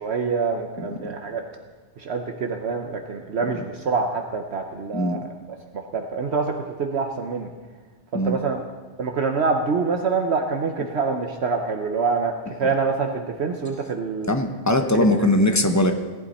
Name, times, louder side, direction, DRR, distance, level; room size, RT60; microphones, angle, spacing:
voice 1, 0.0-1.4 2.0-5.2 5.7-7.5 8.1-8.6 9.0-14.3 14.7-15.1, right 4 dB, 65° right, 3 dB, 1.1 m, -26 dB
voice 2, 14.3-15.9, left 1 dB, 15° left, 6 dB, 0.8 m, -20 dB
18.0 x 11.0 x 4.2 m, 1.3 s
omnidirectional pair, 1.2 m